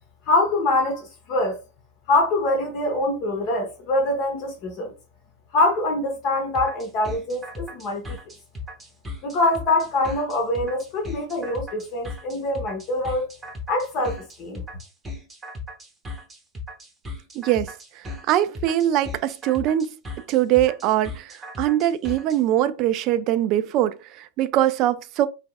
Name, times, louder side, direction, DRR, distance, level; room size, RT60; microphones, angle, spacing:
voice 1, 0.3-1.6 2.1-4.9 5.5-8.2 9.2-13.3 13.7-14.6, left 2 dB, 40° left, 1.0 m, -24 dB
sound 1, 6.5-22.4, left 2 dB, 15° right, 0.9 m, -37 dB
voice 2, 17.3-17.7 18.3-19.9 20.3-25.3, right 12 dB, 40° right, 0.3 m, -22 dB
4.5 x 3.3 x 2.4 m
figure-of-eight pair, 90°, 0 cm